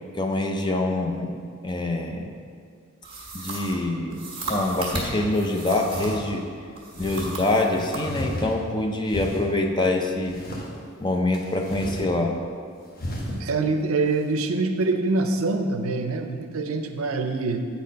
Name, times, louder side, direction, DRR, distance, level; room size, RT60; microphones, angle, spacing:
voice 1, 0.2-1.4 1.6-2.3 3.3-6.5 7.0-10.4 11.0-12.4, left 2 dB, 20° left, 3 dB, 0.5 m, -25 dB
sound 1, 3.0-6.3 6.8-8.1, right 2 dB, 25° right, 1.6 m, -34 dB
sound 2, 4.3-4.4 4.8-5.4 5.9-6.2 6.9-7.3 8.0-8.7 9.0-9.5 10.2-10.7 11.3-12.1 12.4-12.5 12.9-13.4, equal, 40° left, 1.1 m, -34 dB
voice 2, 13.4-17.6, right 3 dB, 75° right, 6 dB, 0.6 m, -25 dB
8.2 x 4.2 x 5.2 m, 2.2 s
head